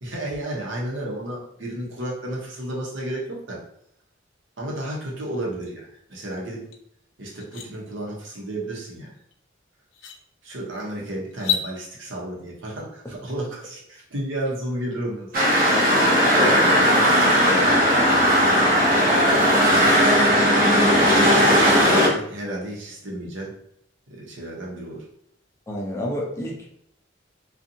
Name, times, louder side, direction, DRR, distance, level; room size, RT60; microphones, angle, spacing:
voice 1, 0.0-3.6 4.6-6.6 7.2-9.1 10.4-15.6 18.4-18.9 19.6-21.6 22.1-23.6 24.1-25.1, right 1 dB, 80° right, -3 dB, 0.8 m, -32 dB
sound 1, 6.7-6.8 7.2-7.7 9.3-9.4 9.9-10.2 11.3-11.7, left 9 dB, 75° left, 0.4 m, -28 dB
sound 2, 15.3-22.1, equal, 45° right, 0.7 m, -17 dB
voice 2, 16.4-17.8 25.7-26.7, left 1 dB, 15° left, -3 dB, 0.4 m, -30 dB
2.6 x 2.4 x 2.6 m, 0.71 s
head